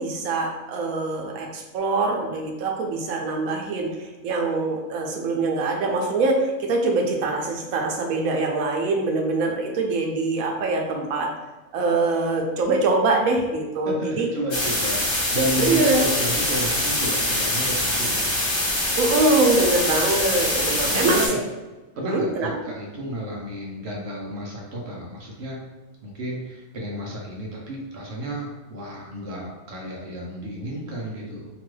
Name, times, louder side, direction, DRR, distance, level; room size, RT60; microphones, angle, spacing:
voice 1, 0.0-11.3 11.7-14.3 15.6-16.1 19.0-21.2 22.0-22.6, right 3 dB, 90° right, 1 dB, 1.0 m, -23 dB
voice 2, 13.8-18.4 20.8-21.4 22.0-25.6 26.0-31.5, equal, 60° right, -2 dB, 0.8 m, -31 dB
sound 1, 14.5-21.3, left 1 dB, 45° left, 0.9 m, -24 dB
2.9 x 2.3 x 3.1 m, 1.2 s
omnidirectional pair, 1.4 m